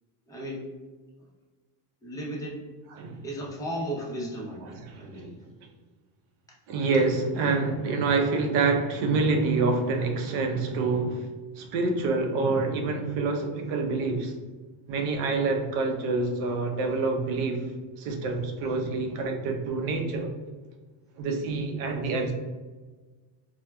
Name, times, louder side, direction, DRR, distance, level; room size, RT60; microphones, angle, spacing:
voice 1, 0.3-0.7 2.0-2.6 3.2-5.3 18.6-18.8, right 1 dB, 5° left, -4 dB, 0.6 m, -35 dB
voice 2, 4.6-5.3 6.7-11.3 11.6-14.3 14.9-17.6 18.0-20.3 21.2-22.3, right 3 dB, 85° right, 3 dB, 0.7 m, -27 dB
4.3 x 2.1 x 2.2 m, 1.3 s
cardioid pair, 130°, 50 cm